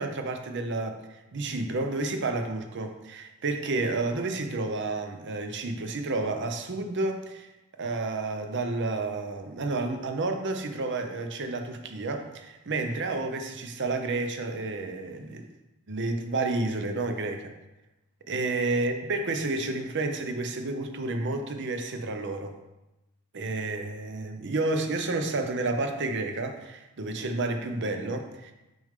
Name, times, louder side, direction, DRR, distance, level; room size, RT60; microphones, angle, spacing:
voice 1, 0.0-7.5 7.8-15.4 15.9-17.5 18.3-22.6 23.3-28.5, right 2 dB, 55° right, 6 dB, 0.7 m, -30 dB
6.3 x 5.2 x 3.6 m, 0.98 s
head